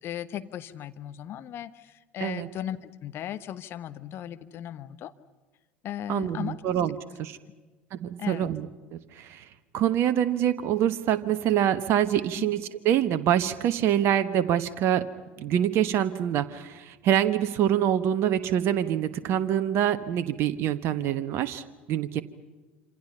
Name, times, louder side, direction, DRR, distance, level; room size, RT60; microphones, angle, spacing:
voice 1, 0.0-5.1 5.8-6.6 8.2-8.5 12.4-12.5, left 11 dB, 45° left, 12 dB, 1.2 m, -37 dB
voice 2, 6.1-7.4 7.9-9.4 9.7-15.0 15.4-22.2, right 10 dB, 50° right, 12 dB, 1.2 m, -25 dB
27.0 x 27.0 x 5.6 m, 1.3 s
figure-of-eight pair, 70°, 6 cm